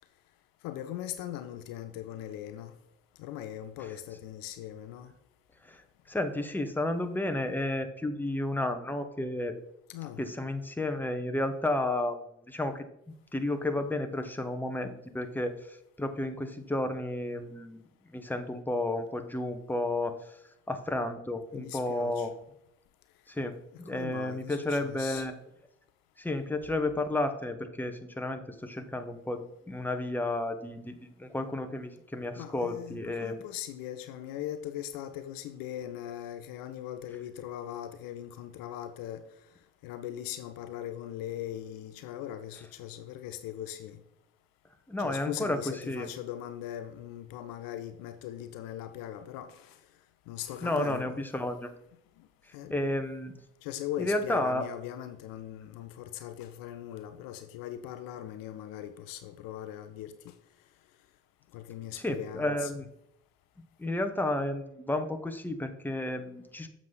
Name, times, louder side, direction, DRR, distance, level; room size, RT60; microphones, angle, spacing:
voice 1, 0.6-2.7 3.2-5.1 9.9-10.2 21.5-22.3 23.7-25.3 32.3-39.3 39.8-44.0 45.0-49.8 50.3-51.2 52.2-52.3 52.5-53.0 53.6-60.3 61.5-62.9, left 11 dB, 65° left, 0.7 m, -40 dB
voice 2, 6.1-9.5 10.2-12.2 12.5-12.8 13.3-17.8 18.1-20.4 20.7-22.3 23.3-25.3 26.2-33.4 44.9-45.6 45.9-46.1 50.6-51.7 52.7-53.3 54.0-54.6 61.9-62.8 63.8-66.7, left 1 dB, 5° left, 1.1 m, -32 dB
7.3 x 6.2 x 4.0 m
hypercardioid pair, 55°, 36 cm